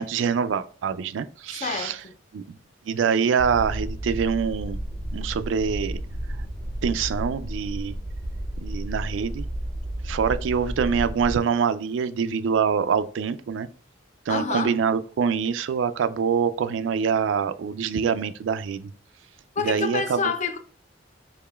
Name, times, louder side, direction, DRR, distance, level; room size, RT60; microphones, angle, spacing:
voice 1, 0.0-2.0 2.3-2.4 2.9-4.8 5.1-6.0 6.8-7.9 8.6-9.5 10.0-13.7 14.3-18.9 19.6-20.2, right 6 dB, 80° right, 0.3 m, -25 dB
voice 2, 1.5-2.1 14.3-14.7 19.6-20.6, left 5 dB, 40° left, 0.5 m, -28 dB
sound 1, 3.4-11.4, right 1 dB, 25° right, 0.5 m, -32 dB
4.8 x 2.9 x 2.3 m
head